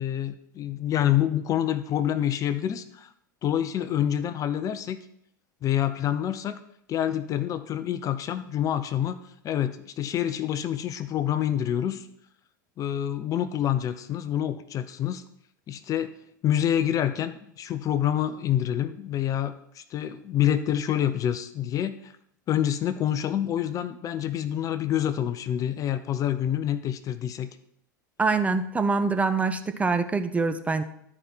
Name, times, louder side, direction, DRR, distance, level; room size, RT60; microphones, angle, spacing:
voice 1, 0.0-3.1 3.4-5.0 5.6-6.6 6.9-9.2 9.4-12.1 12.8-15.2 15.7-16.1 16.4-22.1 22.5-27.5, left 10 dB, 35° left, 12 dB, 0.6 m, -27 dB
voice 2, 28.2-30.8, right 4 dB, 15° right, 9 dB, 0.7 m, -24 dB
12.5 x 4.9 x 4.4 m, 0.74 s
hypercardioid pair, 90°, 10 cm